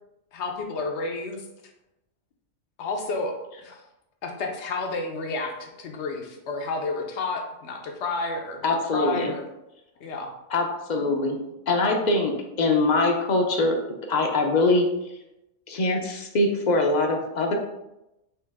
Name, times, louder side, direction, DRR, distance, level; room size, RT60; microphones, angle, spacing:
voice 1, 0.3-1.5 2.8-3.8 4.2-8.6 8.9-9.4 10.0-10.3, left 3 dB, 75° left, 3 dB, 1.0 m, -31 dB
voice 2, 8.6-9.3 10.5-11.4 11.7-13.8 14.1-14.9 15.7-17.5, left 2 dB, 50° left, 3 dB, 0.6 m, -23 dB
4.5 x 2.9 x 3.4 m, 0.91 s
omnidirectional pair, 1.2 m